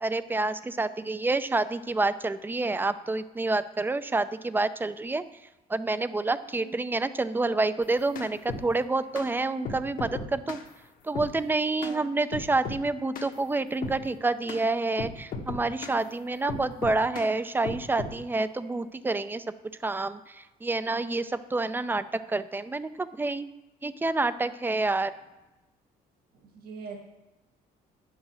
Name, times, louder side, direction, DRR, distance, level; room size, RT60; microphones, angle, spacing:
voice 1, 0.0-5.2 5.7-10.6 11.0-19.4 19.8-20.3 20.6-23.5 23.8-25.1, right 3 dB, 10° right, 13 dB, 0.4 m, -28 dB
sound 1, 7.8-8.7 9.2-9.3 9.7-10.7 11.2-11.3 11.8-12.0 12.3-12.8 13.2-13.3 13.8-14.0 14.5-14.6 15.0-16.0 16.5-17.3 17.7-18.2, left 4 dB, 55° left, 1.2 m, -36 dB
voice 2, 26.3-27.0, right 4 dB, 60° right, 2 dB, 1.8 m, -42 dB
9.1 x 6.4 x 6.3 m, 1.0 s
cardioid pair, 110°, 17 cm